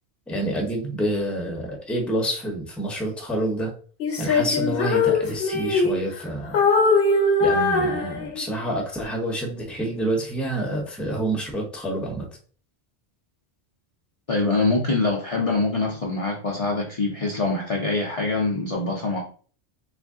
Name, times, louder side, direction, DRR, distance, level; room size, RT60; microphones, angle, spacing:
voice 1, 0.3-3.7 4.2-6.6 7.4-12.3, right 1 dB, ahead, 0 dB, 0.7 m, -28 dB
Female singing, 4.0-6.2 6.5-8.6, left 3 dB, 60° left, 0.9 m, -21 dB
voice 2, 14.3-19.2, left 3 dB, 40° left, -2 dB, 0.6 m, -24 dB
3.2 x 2.5 x 3.5 m, 0.42 s
omnidirectional pair, 1.1 m